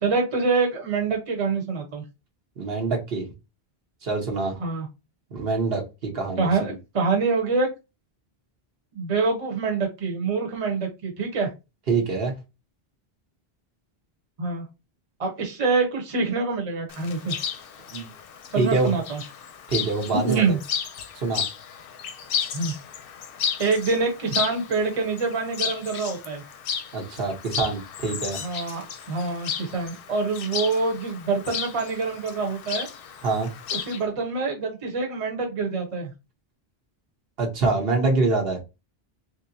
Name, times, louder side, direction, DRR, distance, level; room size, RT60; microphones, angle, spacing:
voice 1, 0.0-2.0 4.6-4.9 6.4-7.7 8.9-11.5 14.4-14.7 15.2-17.3 18.5-19.2 20.2-20.6 22.5-22.7 23.6-26.4 28.4-32.9 33.7-36.1, right 4 dB, 35° right, 0.9 m, -25 dB
voice 2, 2.6-3.2 4.0-4.6 5.3-6.8 11.9-12.4 17.9-18.1 18.6-18.9 19.7-20.4 21.2-21.4 26.9-28.4 33.2-33.5 37.4-38.6, right 3 dB, 70° right, 1.2 m, -25 dB
Chirp tweet, 16.9-34.0, left 8 dB, 65° left, 0.7 m, -34 dB
3.2 x 2.9 x 2.6 m
omnidirectional pair, 1.0 m